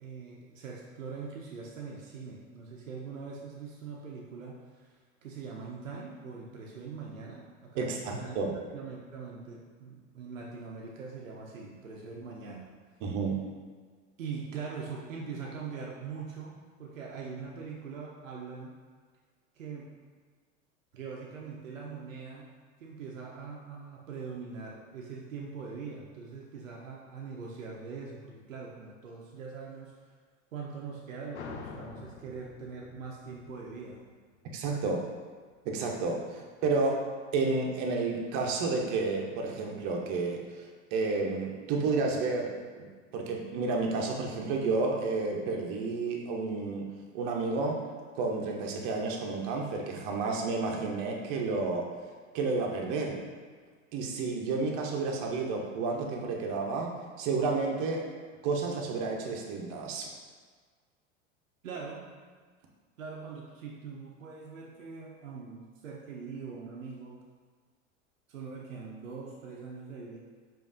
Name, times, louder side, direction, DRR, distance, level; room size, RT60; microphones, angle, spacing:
voice 1, 0.0-8.4 8.7-12.7 14.2-18.7 19.5-19.9 20.9-22.5 22.8-29.9 30.5-34.0 61.6-62.1 63.0-67.2 68.3-70.2, right 5 dB, 90° right, -2 dB, 0.6 m, -42 dB
voice 2, 7.8-8.5 13.0-13.4 34.5-35.1 35.7-40.4 40.9-42.9 43.1-46.9 47.1-47.8 48.2-51.9 52.3-53.2 53.9-58.1 58.4-60.1, right 3 dB, 50° right, 0 dB, 0.8 m, -31 dB
sound 1, 31.3-34.6, left 5 dB, 65° left, 0.6 m, -46 dB
5.0 x 2.6 x 2.6 m, 1.6 s
hypercardioid pair, 90°, 38 cm